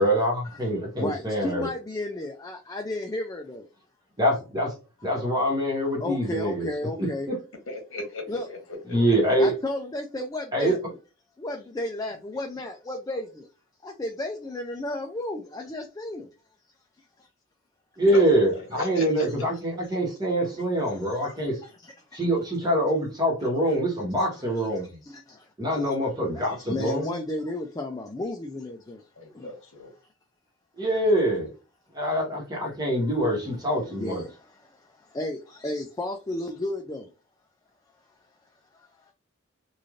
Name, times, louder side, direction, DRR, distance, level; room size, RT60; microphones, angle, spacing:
voice 1, 0.0-1.7 4.2-4.7 5.0-6.7 7.0-7.3 8.9-9.5 10.5-10.8 18.0-21.6 22.1-25.0 25.6-27.2 30.8-31.5 31.9-34.2, right 1 dB, 20° right, 1.2 m, -25 dB
voice 2, 1.0-3.7 5.0-5.1 6.0-7.3 8.3-8.5 9.4-11.0 11.4-13.5 13.8-16.3 17.2-17.3 20.8-22.2 23.6-23.7 24.2-24.3 24.5-26.0 26.3-29.1 29.3-29.5 33.9-37.1 38.7-39.1, left 2 dB, 15° left, 0.3 m, -34 dB
voice 3, 7.7-8.6 8.9-9.0 18.1-18.2 18.7-19.5 29.2-29.9, left 2 dB, 75° left, 1.2 m, -37 dB
3.1 x 2.5 x 2.4 m
head